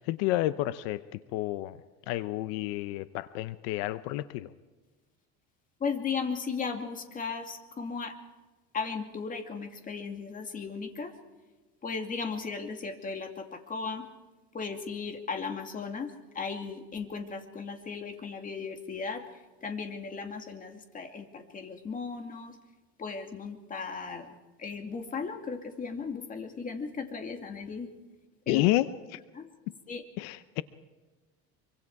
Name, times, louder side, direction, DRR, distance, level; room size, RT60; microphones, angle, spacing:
voice 1, 0.0-1.8 2.1-4.5 28.5-29.2 30.2-30.6, left 16 dB, 80° left, 14 dB, 0.8 m, -30 dB
voice 2, 5.8-8.2 8.7-11.1 11.8-14.0 14.5-19.2 19.6-22.6 23.0-24.3 24.6-27.9 28.5-28.6 29.3-29.4 29.9-30.0, left 5 dB, 25° left, 6 dB, 2.5 m, -36 dB
25.5 x 24.5 x 4.8 m, 1.3 s
cardioid pair, 130°, 31 cm